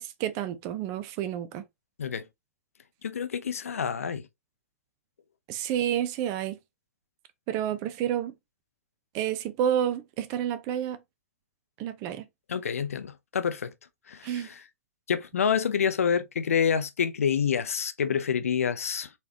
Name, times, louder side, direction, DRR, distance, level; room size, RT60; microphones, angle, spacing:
voice 1, 0.0-1.6 5.5-6.6 7.5-8.3 9.1-11.0 11.8-12.3 14.2-14.5, right 10 dB, 40° right, 0.8 m, -29 dB
voice 2, 3.0-4.3 12.5-13.7 14.1-14.6 15.1-19.1, left 7 dB, 80° left, 0.6 m, -27 dB
4.1 x 3.4 x 2.9 m
hypercardioid pair, 105°, 8 cm